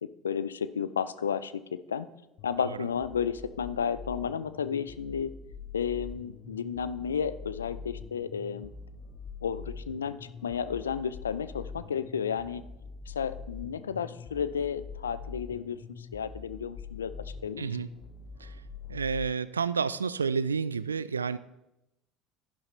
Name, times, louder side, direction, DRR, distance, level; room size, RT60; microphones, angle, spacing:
voice 1, 0.0-2.1 2.4-5.3 5.7-8.7 9.4-12.6 13.1-17.1 17.4-17.7, left 7 dB, 85° left, 15 dB, 0.4 m, -32 dB
sound 1, 2.4-19.3, left 5 dB, 50° left, 1.2 m, -44 dB
voice 2, 17.6-17.9 18.4-18.6 18.9-21.4, right 5 dB, 90° right, 17 dB, 0.3 m, -30 dB
11.5 x 11.0 x 3.2 m, 0.91 s
hypercardioid pair, 65°, 0 cm